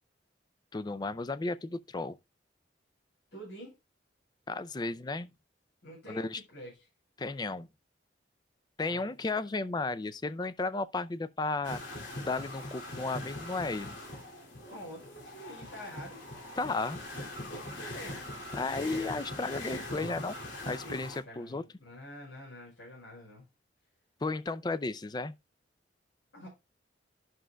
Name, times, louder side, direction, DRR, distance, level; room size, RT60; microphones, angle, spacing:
voice 1, 0.7-2.2 4.5-5.3 6.1-6.4 7.2-7.7 8.8-11.8 12.2-13.9 16.6-17.0 18.5-20.4 20.7-21.6 24.2-25.3, left 3 dB, 20° left, 0.4 m, -34 dB
voice 2, 3.3-3.7 5.8-6.7 8.9-9.4 14.6-16.2 17.8-18.2 20.8-23.4 26.3-26.5, equal, 75° left, 5.6 m, -47 dB
sound 1, 11.6-21.2, left 1 dB, 90° left, 2.5 m, -41 dB
11.5 x 6.3 x 2.3 m
head